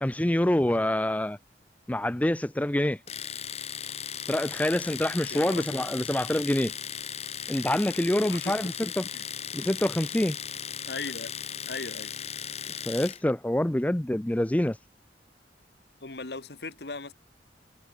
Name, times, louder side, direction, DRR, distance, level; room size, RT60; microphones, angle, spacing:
voice 1, 0.0-1.4 1.9-3.0 4.3-6.7 7.5-9.0 9.5-10.4 12.9-14.8, left 1 dB, 10° left, 0.5 m, -26 dB
Domestic sounds home sounds, 3.1-13.2, left 8 dB, 35° left, 3.7 m, -37 dB
voice 2, 5.3-5.8 8.2-8.7 9.0-9.3 10.9-11.3 11.6-12.1 16.0-17.1, left 3 dB, 65° left, 1.5 m, -38 dB
head